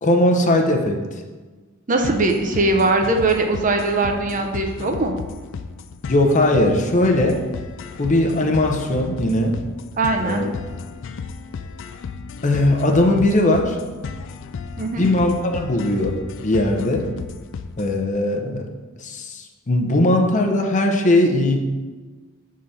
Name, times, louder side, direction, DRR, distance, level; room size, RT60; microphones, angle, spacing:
voice 1, 0.0-1.0 6.1-7.4 8.0-9.5 10.2-10.5 12.4-13.8 15.0-16.2 16.4-17.0 17.8-18.7 19.0-21.6, left 1 dB, 35° left, 3 dB, 0.7 m, -19 dB
voice 2, 1.9-5.1 10.0-10.5 14.8-15.0, right 2 dB, 40° right, 4 dB, 0.6 m, -20 dB
sound 1, 2.0-18.0, left 5 dB, 60° left, 0.3 m, -34 dB
6.5 x 3.8 x 5.6 m, 1.3 s
head